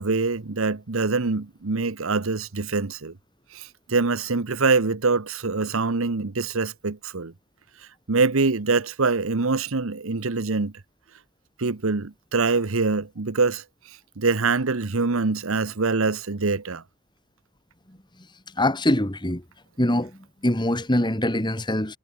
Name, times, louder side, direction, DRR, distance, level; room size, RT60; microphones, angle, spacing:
voice 1, 0.0-3.1 3.5-7.3 8.1-10.7 11.6-13.6 14.2-16.8, right 4 dB, 65° right, 1.0 m, -24 dB
voice 2, 18.6-19.4 19.8-22.0, left 1 dB, 20° left, 2.0 m, -23 dB
head